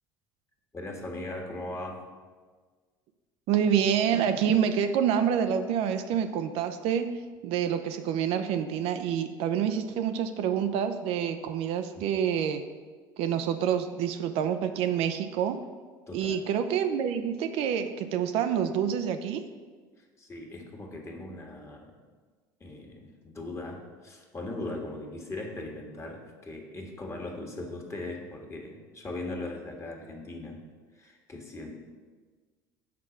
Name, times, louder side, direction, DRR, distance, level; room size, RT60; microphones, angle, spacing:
voice 1, 0.7-2.1 11.9-12.1 16.1-16.4 20.0-22.0 22.6-30.6 30.9-31.7, left 2 dB, 25° left, 1 dB, 1.6 m, -39 dB
voice 2, 3.5-7.1 7.4-12.6 13.2-15.6 16.1-19.4, right 8 dB, 65° right, 8 dB, 0.5 m, -27 dB
5.9 x 4.7 x 6.1 m, 1.4 s
hypercardioid pair, 75°, 11 cm